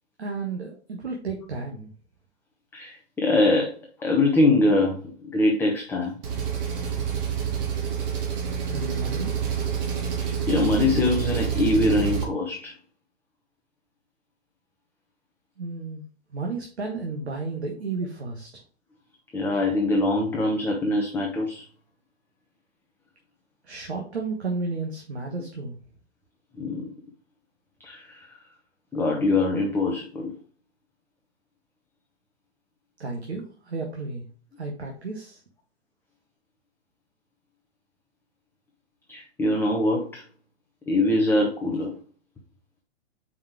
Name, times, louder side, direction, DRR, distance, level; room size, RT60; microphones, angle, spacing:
voice 1, 0.2-1.9 8.7-9.3 15.6-16.0 16.3-18.5 23.6-25.7 33.0-34.2 34.6-35.4, right 3 dB, 70° right, 1 dB, 1.5 m, -32 dB
voice 2, 2.7-3.7 4.0-6.1 10.5-12.7 19.3-21.6 26.6-26.9 27.8-28.4 28.9-30.3 39.1-40.2 40.9-41.9, left 2 dB, 5° left, 0 dB, 0.7 m, -23 dB
Engine, 6.2-12.2, right 7 dB, 40° right, 1.8 m, -27 dB
5.2 x 4.8 x 4.8 m, 0.42 s
figure-of-eight pair, 115°, 34 cm